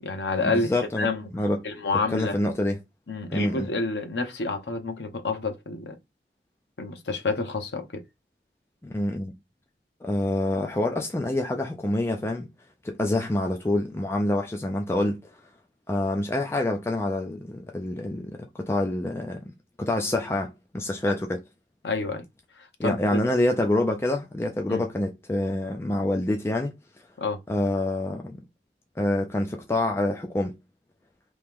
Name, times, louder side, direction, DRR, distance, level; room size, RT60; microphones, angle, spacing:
voice 1, 0.0-1.2 1.6-2.4 3.1-6.0 6.8-8.0 21.1-21.2 21.8-22.2 22.6-23.2 24.7-24.8 27.2-27.4, left 3 dB, 75° left, 0.8 m, -29 dB
voice 2, 0.6-1.1 1.3-1.6 2.1-2.8 3.3-3.7 8.8-9.3 10.0-12.5 12.8-15.3 15.9-19.4 19.8-21.4 22.8-26.7 27.5-28.4 29.0-30.6, left 1 dB, 15° left, 0.3 m, -26 dB
3.0 x 2.8 x 3.6 m
head